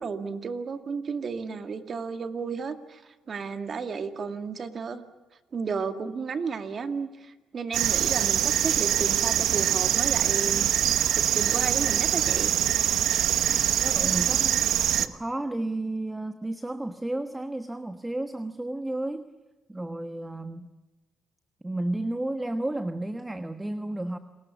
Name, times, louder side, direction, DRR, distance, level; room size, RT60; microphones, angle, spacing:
voice 1, 0.0-5.0 5.5-10.7 10.9-12.5, right 5 dB, 45° right, 8 dB, 2.2 m, -33 dB
sound 1, 7.7-15.1, right 10 dB, 75° right, 1.0 m, -24 dB
voice 2, 13.8-14.6 14.9-19.3 19.7-20.7 21.6-24.2, right 1 dB, 10° right, 9 dB, 1.3 m, -32 dB
29.5 x 21.0 x 7.2 m, 1.1 s
cardioid pair, 90°, 0 cm